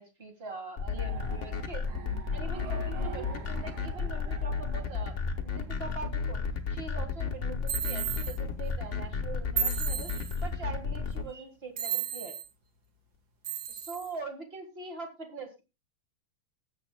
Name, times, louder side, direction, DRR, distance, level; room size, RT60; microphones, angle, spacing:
voice 1, 0.0-1.9 2.3-5.2 5.4-6.4 6.7-12.3 13.7-15.6, right 4 dB, 30° right, 5 dB, 1.3 m, -42 dB
sound 1, 0.8-11.2, left 5 dB, 45° left, 1.0 m, -32 dB
sound 2, 1.0-5.9, right 8 dB, 80° right, 2.7 m, -45 dB
sound 3, 7.7-8.4 9.6-10.4 11.8-12.5 13.4-14.1, right 8 dB, 45° right, 1.4 m, -33 dB
20.0 x 8.2 x 2.2 m, 0.27 s
omnidirectional pair, 3.4 m